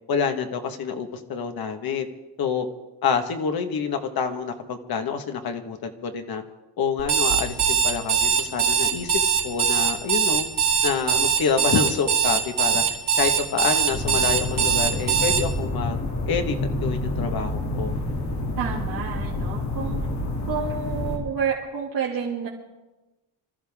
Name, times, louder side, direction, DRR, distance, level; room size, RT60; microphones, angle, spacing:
voice 1, 0.1-2.1 2.4-2.7 3.0-6.4 6.8-10.5 10.8-12.8 13.1-16.0 16.3-17.9, left 6 dB, 60° left, 5 dB, 1.7 m, -27 dB
Alarm, 7.0-15.4, right 7 dB, 85° right, 3.5 m, -21 dB
sound 1, 13.9-21.2, left 2 dB, 45° left, 3.1 m, -28 dB
voice 2, 18.6-20.0 20.5-22.5, right 6 dB, 55° right, -5 dB, 2.5 m, -29 dB
26.0 x 14.0 x 3.7 m, 1.1 s
cardioid pair, 155°, 40 cm